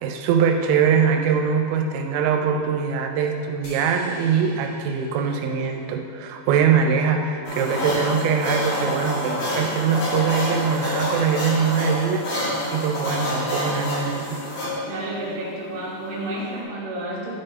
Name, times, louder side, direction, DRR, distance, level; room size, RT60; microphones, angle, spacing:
voice 1, 0.0-12.2 12.7-14.4, right 6 dB, 85° right, 3 dB, 2.8 m, -22 dB
sound 1, 3.6-6.3, equal, 90° left, 1.3 m, -45 dB
sound 2, 7.4-16.6, left 1 dB, 60° left, 2.8 m, -28 dB
voice 2, 14.9-17.3, right 1 dB, 60° right, -6 dB, 2.0 m, -31 dB
11.5 x 4.2 x 3.2 m, 2.5 s
omnidirectional pair, 5.1 m